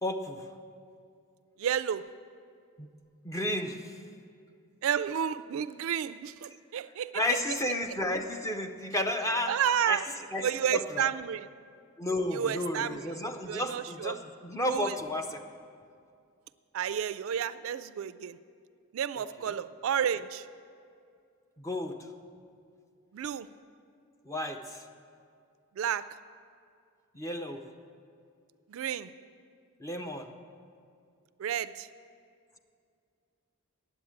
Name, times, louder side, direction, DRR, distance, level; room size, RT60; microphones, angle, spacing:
voice 1, 0.0-0.5 2.8-2.9 3.2-3.9 7.1-9.5 9.9-10.0 10.3-10.5 10.7-11.1 12.0-15.4 19.4-19.6 21.6-22.0 24.3-24.8 27.1-27.7 29.8-30.3, left 1 dB, 15° left, 5 dB, 0.5 m, -32 dB
voice 2, 1.6-2.0 4.8-7.1 9.5-10.0 10.4-11.5 12.3-13.1 13.5-14.2 14.7-14.9 16.7-18.4 18.9-20.5 23.1-23.5 25.8-26.1 28.7-29.1 31.4-31.9, right 8 dB, 65° right, 15 dB, 0.3 m, -31 dB
9.7 x 8.0 x 8.6 m, 2.4 s
head